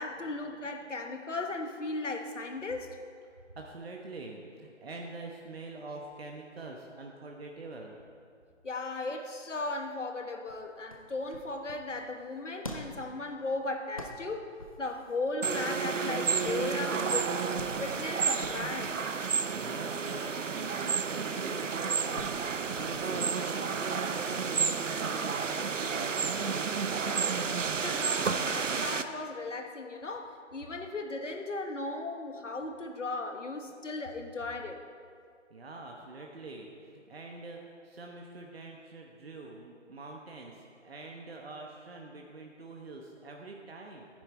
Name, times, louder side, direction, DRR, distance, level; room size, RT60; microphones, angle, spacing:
voice 1, 0.0-3.0 8.6-17.5 17.8-19.0 27.8-34.8, left 2 dB, 75° left, 1.3 m, -36 dB
voice 2, 3.5-8.0 19.6-27.3 35.5-44.1, right 3 dB, 55° right, 1.1 m, -45 dB
sound 1, 10.5-25.2, left 1 dB, 30° left, 0.6 m, -50 dB
sound 2, 15.4-29.0, right 5 dB, 85° right, 0.7 m, -31 dB
13.0 x 10.0 x 4.3 m
figure-of-eight pair, 160°, 37 cm